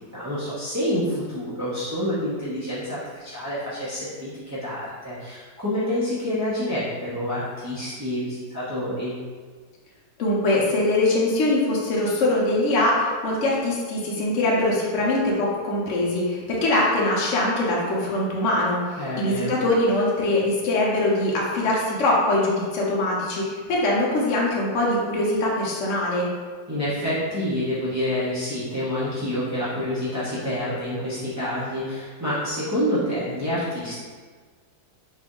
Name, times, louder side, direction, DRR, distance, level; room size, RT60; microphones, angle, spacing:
voice 1, 0.1-9.2 19.0-19.6 26.7-34.0, left 1 dB, 25° right, -12 dB, 0.4 m, -28 dB
voice 2, 10.2-26.3, left 1 dB, 55° left, -5 dB, 1.0 m, -22 dB
4.1 x 2.7 x 3.7 m, 1.5 s
omnidirectional pair, 1.9 m